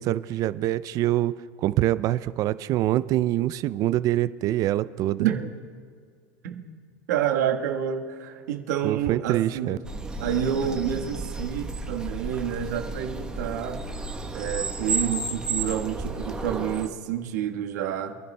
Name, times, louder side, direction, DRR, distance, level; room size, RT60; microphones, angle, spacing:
voice 1, 0.0-1.3 1.6-5.3 8.8-9.8, right 14 dB, 40° right, 15 dB, 0.4 m, -25 dB
voice 2, 5.2-5.5 6.4-6.7 7.1-9.7 10.2-13.8 14.3-18.2, right 9 dB, 85° right, 3 dB, 1.3 m, -28 dB
sound 1, 9.8-16.9, right 3 dB, 10° right, 1.0 m, -32 dB
26.0 x 10.5 x 2.2 m, 2.1 s
supercardioid pair, 130°, 9 cm